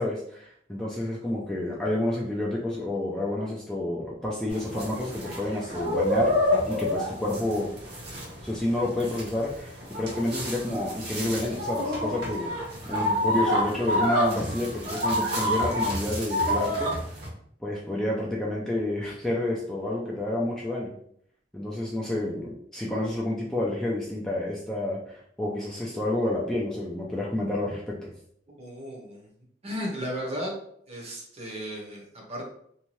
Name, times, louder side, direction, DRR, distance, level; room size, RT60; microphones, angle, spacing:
voice 1, 0.0-6.4 6.7-7.7 8.4-16.9 17.6-20.9 21.5-28.1, left 1 dB, 5° left, -5 dB, 0.4 m, -29 dB
sound 1, 4.5-17.3, left 1 dB, 60° right, 1.0 m, -28 dB
voice 2, 28.5-29.3 29.6-30.5 30.9-32.4, equal, 35° right, -1 dB, 0.8 m, -35 dB
2.7 x 2.2 x 3.0 m, 0.66 s
head